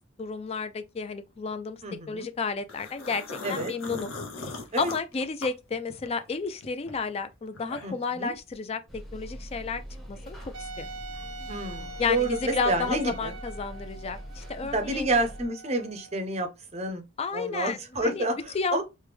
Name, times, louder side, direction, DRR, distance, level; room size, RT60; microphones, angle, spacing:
voice 1, 0.2-4.1 4.8-9.8 10.1-10.8 12.0-15.0 17.2-18.3 18.5-18.8, left 4 dB, 30° left, 0.3 m, -32 dB
voice 2, 1.8-2.3 3.4-3.7 4.7-4.9 7.8-8.3 11.5-13.3 14.7-17.0 17.3-18.8, right 1 dB, 30° right, 0.6 m, -29 dB
sound 1, 2.7-6.2 6.6-8.1, left 3 dB, 65° left, 0.7 m, -39 dB
sound 2, 8.9-15.5, equal, ahead, 0.8 m, -42 dB
Wind instrument woodwind instrument, 10.5-16.2, right 3 dB, 80° right, 0.5 m, -43 dB
3.2 x 2.2 x 3.3 m
head